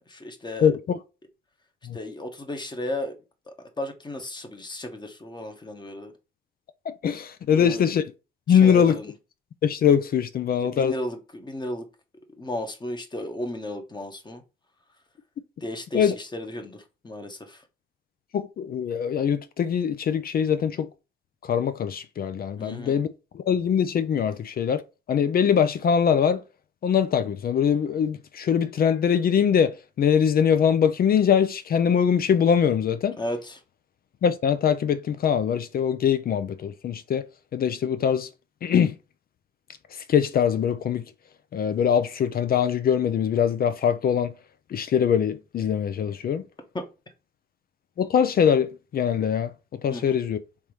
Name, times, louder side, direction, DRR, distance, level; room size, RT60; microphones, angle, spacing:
voice 1, 0.1-0.7 1.9-3.2 3.5-6.1 7.5-7.9 8.5-9.1 10.5-11.9 12.4-14.4 15.6-17.6 22.6-23.0 33.2-33.6 46.7-46.8 49.9-50.2, left 1 dB, 20° left, 1.1 m, -34 dB
voice 2, 0.6-1.0 1.9-2.0 7.0-8.0 8.5-9.0 9.6-10.9 15.9-16.1 18.3-20.9 21.5-23.1 23.5-24.8 25.1-26.4 26.8-33.2 34.2-37.2 37.5-38.3 38.6-38.9 40.1-41.0 41.5-44.3 44.7-46.4 48.0-49.5 49.8-50.4, left 8 dB, 50° left, 0.5 m, -22 dB
3.5 x 2.7 x 4.7 m
cardioid pair, 90°, 20 cm